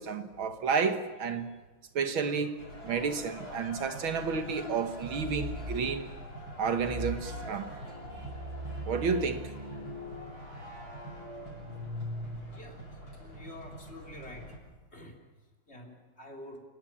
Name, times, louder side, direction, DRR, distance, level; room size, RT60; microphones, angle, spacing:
voice 1, 0.0-1.5 2.0-6.1 6.6-7.7 8.9-9.4, right 5 dB, 75° right, 2.2 m, -31 dB
sound 1, 2.6-14.6, equal, 50° left, 8.3 m, -45 dB
sound 2, 5.0-5.9 6.7-12.8, equal, 20° right, 2.6 m, -41 dB
voice 2, 13.2-14.5 14.9-15.2 15.7-16.6, left 1 dB, 30° left, 3.7 m, -47 dB
29.0 x 17.5 x 8.8 m
omnidirectional pair, 2.2 m